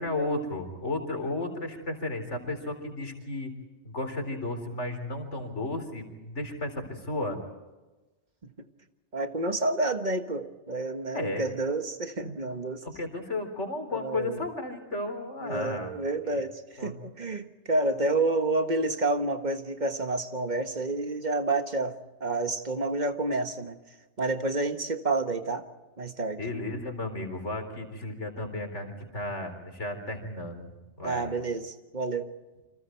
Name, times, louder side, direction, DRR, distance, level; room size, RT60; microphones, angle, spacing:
voice 1, 0.0-3.5 3.8-7.4 11.1-11.5 12.2-12.4 12.8-15.9 16.2-16.3 16.8-17.0 26.4-30.7 31.0-31.3, left 2 dB, 85° left, 5 dB, 4.3 m, -34 dB
voice 2, 9.1-12.8 13.9-14.4 15.4-23.8 24.2-25.6 26.0-26.4 31.0-32.3, right 2 dB, 40° right, 7 dB, 1.6 m, -29 dB
29.0 x 26.0 x 4.6 m, 1.1 s
omnidirectional pair, 1.2 m